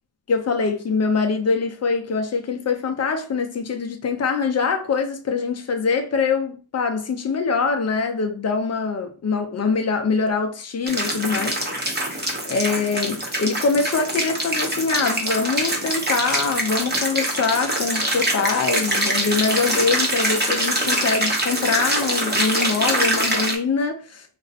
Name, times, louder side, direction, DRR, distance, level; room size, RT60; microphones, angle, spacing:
voice 1, 0.3-24.2, left 4 dB, 35° left, 0.5 m, -24 dB
sound 1, 10.9-23.5, right 1 dB, 20° right, 0.8 m, -24 dB
2.6 x 2.1 x 4.0 m
cardioid pair, 120°, 47 cm